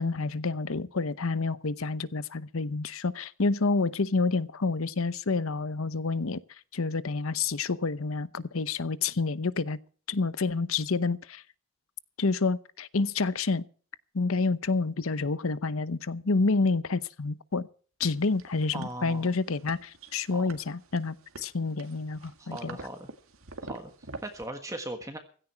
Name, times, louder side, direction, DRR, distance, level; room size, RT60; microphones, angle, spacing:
voice 1, 0.0-6.4 6.7-9.8 10.1-11.4 12.2-13.6 14.1-17.7 18.0-22.8, left 3 dB, 75° left, 0.8 m, -28 dB
sound 1, 18.0-24.5, right 3 dB, 75° right, 1.9 m, -47 dB
voice 2, 18.7-19.3 20.3-20.4 22.4-23.1 23.6-25.2, right 1 dB, 15° right, 1.4 m, -39 dB
16.0 x 13.5 x 4.6 m
head